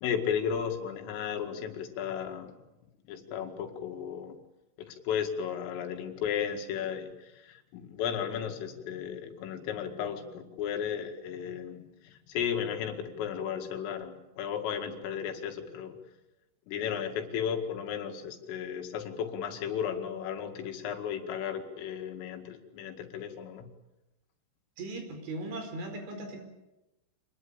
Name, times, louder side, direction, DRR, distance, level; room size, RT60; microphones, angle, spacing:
voice 1, 0.0-2.6 3.1-4.4 4.8-16.0 16.7-23.7, left 8 dB, 85° left, 5 dB, 4.7 m, -34 dB
voice 2, 24.8-26.4, right 2 dB, 70° right, 6 dB, 6.9 m, -38 dB
27.0 x 20.5 x 8.8 m, 0.98 s
omnidirectional pair, 5.7 m